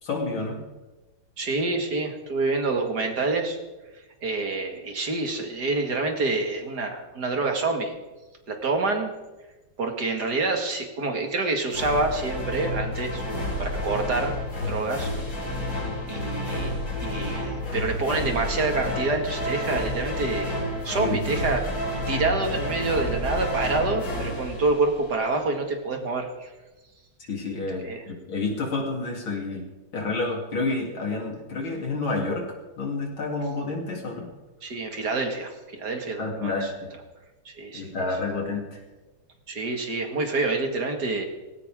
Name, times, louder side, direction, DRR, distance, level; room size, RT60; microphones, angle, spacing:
voice 1, 0.0-0.6 21.0-21.2 27.3-29.7 29.9-34.3 36.2-36.9 37.7-38.8, left 3 dB, 90° left, 0 dB, 4.1 m, -29 dB
voice 2, 1.4-3.6 4.2-7.9 8.5-9.1 9.8-14.3 14.7-15.1 16.1-20.5 20.8-26.5 27.8-28.0 34.6-36.7 37.5-37.9 39.5-41.3, right 3 dB, 55° right, 3 dB, 2.7 m, -27 dB
sound 1, 11.7-25.4, left 1 dB, 70° left, 6.0 m, -30 dB
19.0 x 17.0 x 3.8 m, 1.1 s
omnidirectional pair, 2.1 m